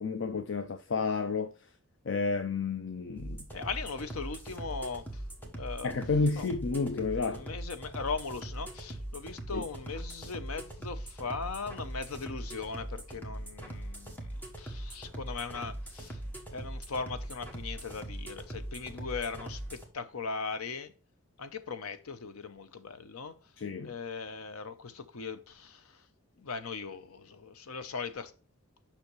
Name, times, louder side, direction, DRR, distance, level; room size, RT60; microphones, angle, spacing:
voice 1, 0.0-1.5 2.0-3.5 5.8-7.4 9.5-9.7 23.6-23.9, left 4 dB, 60° left, 0.5 m, -31 dB
sound 1, 3.2-19.9, right 1 dB, 10° left, 1.1 m, -41 dB
voice 2, 3.5-5.2 5.5-5.9 6.4-6.5 7.3-16.2 16.5-20.9 21.4-23.3 23.8-26.1 26.4-28.3, left 4 dB, 85° left, 0.7 m, -39 dB
7.1 x 5.7 x 3.1 m
head